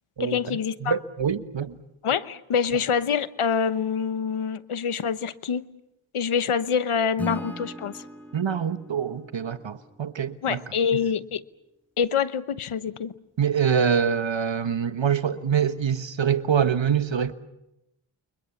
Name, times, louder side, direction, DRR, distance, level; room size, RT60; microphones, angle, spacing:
voice 1, 0.2-0.9 2.0-5.7 6.1-8.0 10.4-11.4 12.0-13.1, left 6 dB, 80° left, 1.1 m, -26 dB
voice 2, 0.8-1.7 8.3-10.6 13.4-17.3, right 7 dB, 65° right, 1.6 m, -25 dB
Acoustic guitar / Strum, 7.2-10.3, equal, 5° left, 6.1 m, -39 dB
29.5 x 24.5 x 7.3 m
cardioid pair, 40°, 49 cm